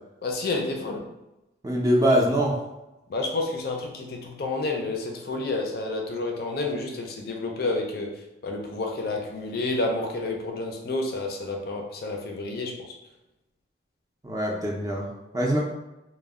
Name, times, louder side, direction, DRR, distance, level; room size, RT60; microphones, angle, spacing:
voice 1, 0.2-1.1 3.1-8.1 8.4-12.9, left 2 dB, 55° left, 1 dB, 0.4 m, -30 dB
voice 2, 1.6-2.6 14.2-15.1 15.3-15.6, equal, 20° right, -2 dB, 0.4 m, -23 dB
2.1 x 2.1 x 3.4 m, 0.96 s
head